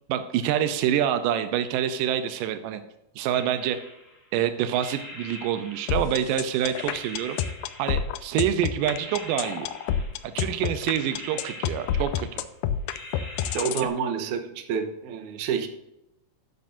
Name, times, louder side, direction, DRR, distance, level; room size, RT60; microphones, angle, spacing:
voice 1, 0.1-2.8 3.2-3.8 4.3-7.4 7.8-9.7 10.2-12.4, right 10 dB, 90° right, 9 dB, 2.3 m, -26 dB
sound 1, 3.3-4.3 4.7-6.3 6.7-8.4 8.8-10.4 10.8-12.5 12.9-13.9, left 1 dB, 25° left, 3.3 m, -44 dB
sound 2, 5.9-13.9, left 9 dB, 85° left, 2.1 m, -28 dB
voice 2, 13.5-15.7, right 6 dB, 75° right, 5 dB, 2.4 m, -28 dB
12.0 x 9.4 x 2.7 m, 0.89 s
omnidirectional pair, 3.8 m